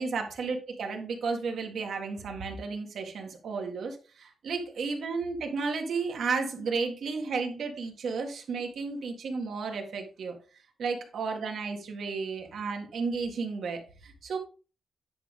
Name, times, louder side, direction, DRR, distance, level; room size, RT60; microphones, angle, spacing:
voice 1, 0.0-10.4 10.8-14.4, right 4 dB, 85° right, 3 dB, 1.9 m, -33 dB
9.9 x 5.0 x 3.7 m, 0.35 s
wide cardioid pair, 130°, 0 cm